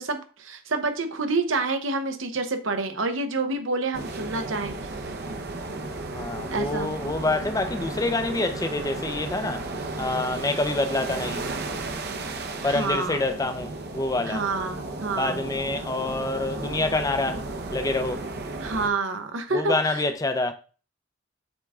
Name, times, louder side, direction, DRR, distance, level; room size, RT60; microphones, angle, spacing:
voice 1, 0.0-4.7 6.5-7.0 12.6-13.2 14.3-15.4 18.6-20.0, right 3 dB, 80° right, 0.9 m, -28 dB
sound 1, 3.9-18.9, right 2 dB, 55° right, 0.8 m, -34 dB
voice 2, 6.1-9.7 10.0-11.4 12.6-14.4 15.2-18.3 19.5-20.5, left 2 dB, 20° left, 0.5 m, -27 dB
7.7 x 3.6 x 3.6 m
head